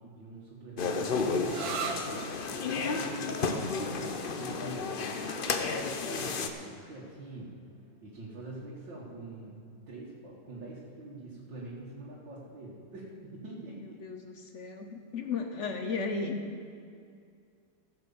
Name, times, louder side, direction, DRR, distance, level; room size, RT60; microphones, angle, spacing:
voice 1, 0.0-2.3 2.8-4.9 5.4-7.5 8.0-14.0, right 2 dB, 75° right, -6 dB, 2.2 m, -45 dB
sound 1, 0.8-6.5, left 4 dB, 85° left, 0.4 m, -32 dB
sound 2, 1.4-8.8, right 6 dB, 60° right, 1.2 m, -44 dB
voice 2, 13.7-16.4, left 4 dB, 55° left, 5 dB, 0.8 m, -35 dB
15.5 x 6.1 x 7.0 m, 2.3 s
omnidirectional pair, 2.0 m